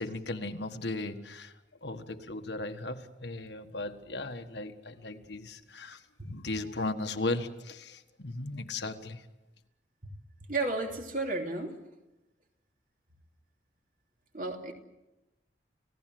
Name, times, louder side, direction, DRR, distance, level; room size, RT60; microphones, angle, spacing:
voice 1, 0.0-1.5 1.8-9.2, left 2 dB, 70° left, 6 dB, 1.6 m, -37 dB
voice 2, 10.5-11.8 14.3-14.7, right 2 dB, 45° right, 2 dB, 3.1 m, -32 dB
30.0 x 16.5 x 7.8 m, 1.0 s
head